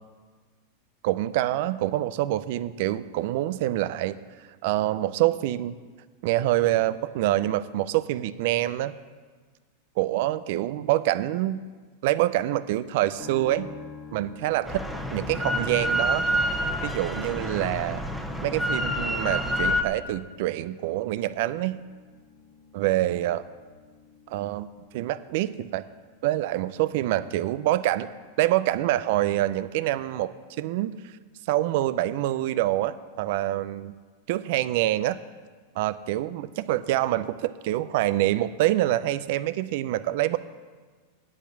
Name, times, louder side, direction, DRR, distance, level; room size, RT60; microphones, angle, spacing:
voice 1, 1.0-4.2 4.6-5.8 6.2-8.9 10.0-11.6 12.0-13.7 14.1-14.8 15.1-16.2 16.8-18.0 18.4-21.8 22.7-23.4 24.3-24.7 24.9-25.8 26.2-28.1 28.4-30.9 31.5-33.9 34.3-35.2 35.8-40.4, right 15 dB, 65° right, 15 dB, 0.5 m, -26 dB
sound 1, 13.2-28.4 28.7-29.6, left 5 dB, 40° left, 2.1 m, -49 dB
Drill, 14.7-19.8, equal, ahead, 1.1 m, -27 dB
8.6 x 8.4 x 8.7 m, 1.5 s
hypercardioid pair, 125°, 0 cm